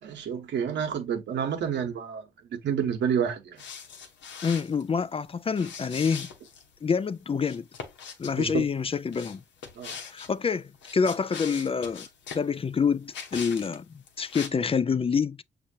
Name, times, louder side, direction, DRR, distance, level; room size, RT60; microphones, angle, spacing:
voice 1, 0.0-2.2 2.5-3.6 8.4-8.6 9.8-9.9, right 7 dB, 80° right, 1.2 m, -29 dB
sound 1, 3.6-4.8 5.5-6.7 7.4-8.4 9.1-10.3 10.7-12.5 13.1-13.8 14.1-14.5, left 6 dB, 85° left, 1.0 m, -41 dB
voice 2, 4.4-6.3 6.8-7.7 8.2-9.4 10.1-12.1 12.3-13.8 14.2-15.4, left 6 dB, 30° left, 0.4 m, -27 dB
6.4 x 2.9 x 2.8 m
supercardioid pair, 55°, 18 cm